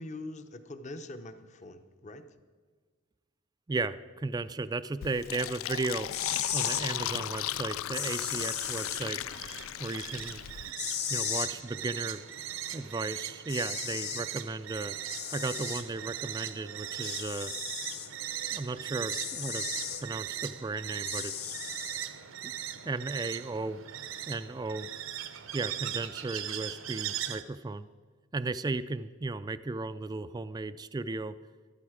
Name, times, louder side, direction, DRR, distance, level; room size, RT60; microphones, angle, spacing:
voice 1, 0.0-2.3, left 2 dB, 35° left, 9 dB, 0.8 m, -43 dB
voice 2, 3.7-6.1 6.5-9.2 9.8-10.4 11.1-12.2 12.7-15.0 15.3-17.5 18.5-19.7 20.0-21.6 22.4-22.5 22.8-23.8 24.3-24.9 25.5-27.9 28.3-31.4, right 3 dB, 20° right, 12 dB, 0.3 m, -35 dB
Fill (with liquid), 5.0-10.7, left 12 dB, 85° left, 0.3 m, -36 dB
sound 1, 6.1-6.8 7.9-9.0 10.8-11.5 13.0-13.1 13.5-14.3 15.1-15.8 17.0-18.1 19.1-20.0 21.0-22.0, left 8 dB, 55° left, 1.2 m, -35 dB
sound 2, 7.7-27.4, right 10 dB, 80° right, 0.8 m, -39 dB
13.5 x 13.0 x 4.9 m, 1.5 s
head